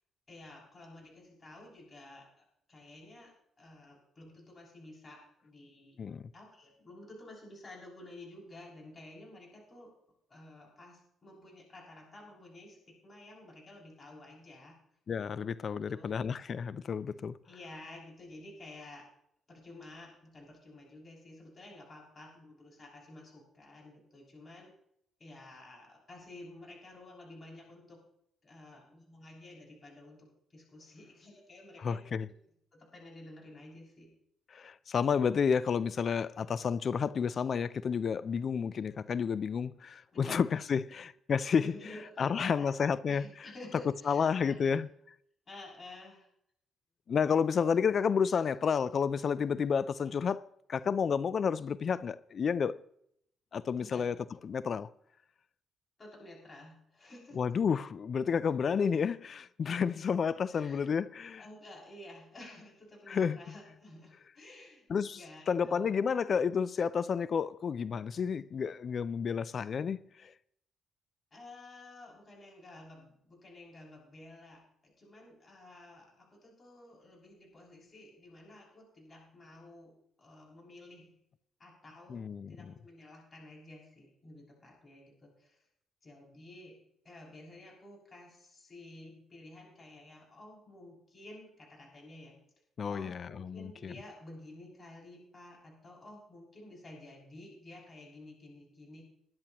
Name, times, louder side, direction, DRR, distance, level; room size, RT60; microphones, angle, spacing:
voice 1, 0.3-3.3 3.6-6.0 6.3-9.9 10.3-14.8 15.8-16.1 17.4-19.1 19.5-24.7 25.2-28.0 28.4-32.0 32.7-34.1 40.1-40.4 41.6-44.8 45.5-46.3 50.0-50.1 53.8-54.1 56.0-57.4 60.5-60.9 61.4-65.9 71.3-79.9 80.2-81.1 81.6-85.6 86.0-86.8 87.0-92.3 92.9-99.0, left 2 dB, 35° left, 6.5 m, -52 dB
voice 2, 15.1-17.4 31.8-32.3 34.5-41.6 42.2-43.2 44.1-44.9 47.1-50.4 50.7-52.8 53.5-54.1 54.4-54.9 57.4-61.4 63.1-63.4 64.9-65.2 65.5-70.3 82.1-82.7 92.8-93.9, left 6 dB, 50° left, 0.4 m, -31 dB
21.5 x 10.5 x 3.0 m
cardioid pair, 90°, 0 cm